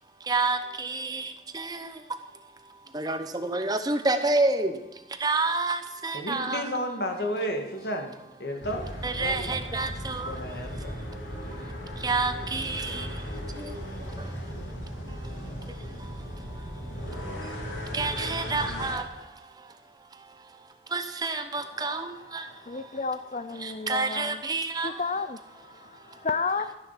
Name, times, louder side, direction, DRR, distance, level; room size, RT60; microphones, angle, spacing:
voice 1, 0.3-1.9 2.9-4.7 5.2-6.6 9.0-10.3 12.0-13.0 17.9-19.0 20.9-22.4 23.6-24.9, right 3 dB, 20° right, 0.9 m, -28 dB
voice 2, 6.1-8.1 8.4-8.9 9.2-9.5 10.3-10.9, equal, 60° left, 2.1 m, -32 dB
sound 1, 8.6-19.0, equal, 85° left, 3.3 m, -36 dB
voice 3, 22.4-24.4 24.8-26.7, left 4 dB, 35° left, 0.5 m, -32 dB
14.0 x 10.5 x 5.9 m
head